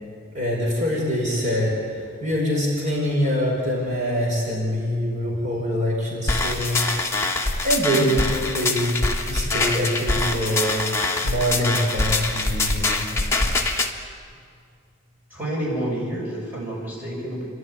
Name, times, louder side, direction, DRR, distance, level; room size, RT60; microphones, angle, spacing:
voice 1, 0.3-6.9 7.6-9.0 9.3-10.8 11.2-13.0, equal, 40° right, -3 dB, 5.2 m, -24 dB
sound 1, 6.3-13.9, left 2 dB, 15° left, 1.6 m, -24 dB
voice 2, 15.3-17.5, right 1 dB, 10° right, -5 dB, 6.9 m, -29 dB
29.5 x 12.5 x 9.7 m, 2.2 s
head